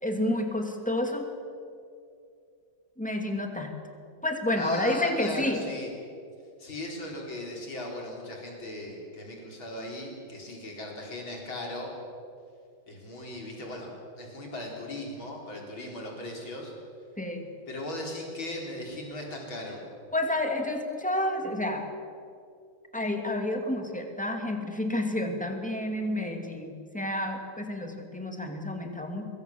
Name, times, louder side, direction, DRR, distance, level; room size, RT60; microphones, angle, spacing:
voice 1, 0.0-1.3 3.0-3.8 4.2-5.6 17.2-17.5 20.1-21.9 22.9-29.3, left 1 dB, 5° left, 3 dB, 2.4 m, -30 dB
voice 2, 4.5-5.9 6.6-11.9 12.9-13.9 14.2-16.7 17.7-19.8, left 2 dB, 90° left, 0 dB, 5.1 m, -38 dB
24.0 x 22.5 x 7.4 m, 2.4 s
omnidirectional pair, 2.1 m